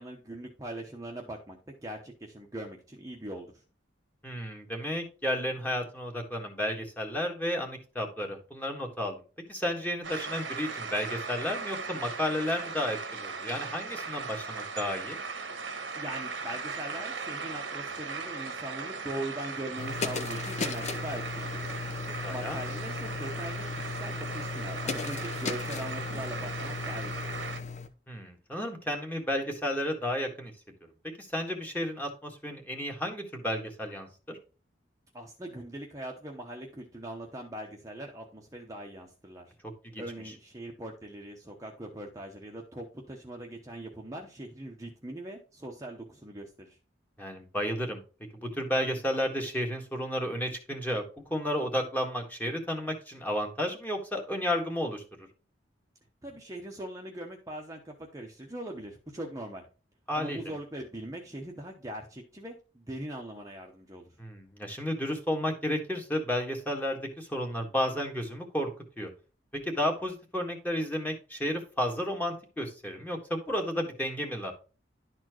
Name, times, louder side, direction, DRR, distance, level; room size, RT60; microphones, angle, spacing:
voice 1, 0.0-3.5 16.0-21.7 22.3-27.4 35.1-39.5 40.0-46.8 56.2-59.6 60.1-64.1, right 1 dB, 15° right, 0 dB, 0.9 m, -41 dB
voice 2, 4.2-9.2 9.5-15.2 22.2-22.6 28.1-30.5 31.2-34.4 39.9-40.0 47.2-48.0 48.3-51.0 51.3-55.0 60.1-60.4 64.2-68.7 69.0-69.1 69.6-74.5, equal, 10° left, 2 dB, 1.6 m, -32 dB
sound 1, 10.0-27.6, right 4 dB, 90° right, 1.3 m, -38 dB
sound 2, 19.8-27.9, left 4 dB, 40° left, 0.8 m, -36 dB
11.5 x 4.3 x 3.0 m, 0.34 s
head